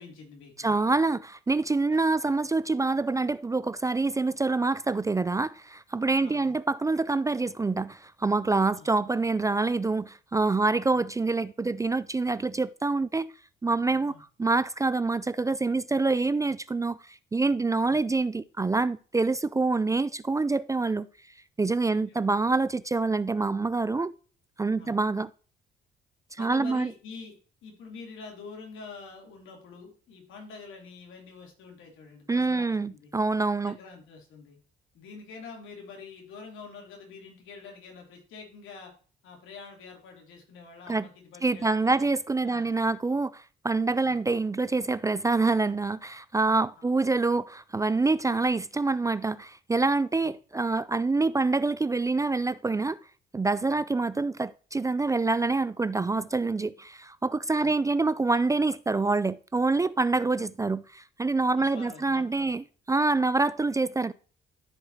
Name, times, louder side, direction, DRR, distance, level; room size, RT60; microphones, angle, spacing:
voice 1, 0.0-0.8 1.9-2.4 6.2-6.5 8.7-8.9 10.9-11.0 14.1-14.2 17.9-18.0 21.9-22.2 24.8-25.0 26.4-27.3 27.6-33.1 33.6-34.6 34.9-38.9 39.2-42.0 42.4-42.7 44.0-44.2 46.8-46.9 50.2-50.3 53.7-53.8 57.5-57.7 61.5-62.6, left 4 dB, 85° left, 3.0 m, -46 dB
voice 2, 0.6-13.3 13.6-21.1 21.6-24.1 24.6-25.3 26.3-26.9 32.3-33.8 40.9-41.1 41.4-53.0 53.3-64.1, right 3 dB, 15° right, 0.3 m, -26 dB
14.0 x 4.8 x 2.8 m
cardioid pair, 90°, 20 cm